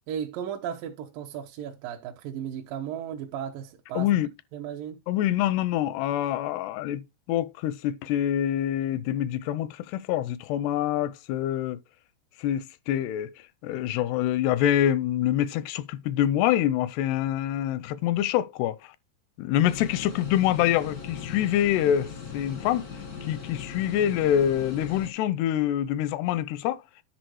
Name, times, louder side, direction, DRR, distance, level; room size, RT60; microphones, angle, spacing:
voice 1, 0.1-4.1 4.5-5.0, right 9 dB, 75° right, 2.2 m, -35 dB
voice 2, 4.0-4.3 5.1-7.0 7.3-11.8 12.4-13.3 13.6-18.8 19.4-22.9 23.2-26.8, left 11 dB, 85° left, 2.7 m, -25 dB
sound 1, 19.6-25.1, left 6 dB, 60° left, 0.9 m, -39 dB
10.5 x 4.8 x 4.7 m
omnidirectional pair, 4.8 m